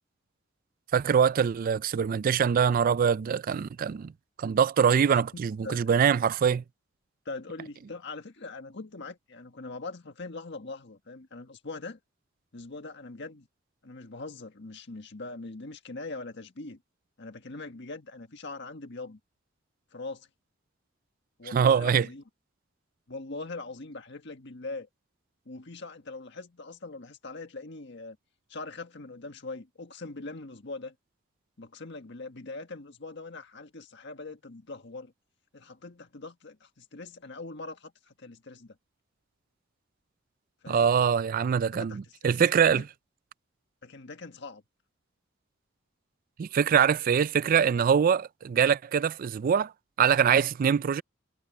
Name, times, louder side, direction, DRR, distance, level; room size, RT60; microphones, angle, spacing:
voice 1, 0.9-4.1 4.4-6.6 21.5-22.1 40.7-42.8 46.4-49.7 50.0-51.0, right 7 dB, 45° right, 0.3 m, -23 dB
voice 2, 7.2-12.0 12.5-13.5 13.8-16.8 17.2-19.2 19.9-20.3 21.4-22.2 23.1-24.9 25.4-28.2 28.5-30.9 31.6-35.1 35.5-38.8 40.6-40.9 41.7-42.8 43.8-44.6, left 3 dB, 65° left, 1.6 m, -42 dB
head